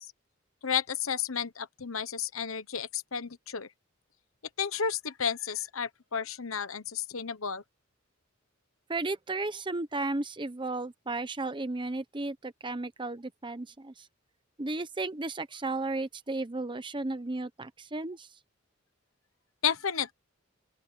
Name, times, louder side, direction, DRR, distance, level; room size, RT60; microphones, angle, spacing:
voice 1, 0.6-3.7 4.6-7.6 19.6-20.1, left 7 dB, 75° left, 1.2 m, -32 dB
voice 2, 8.9-14.1 14.6-18.3, right 2 dB, 25° right, 1.0 m, -34 dB
open air
head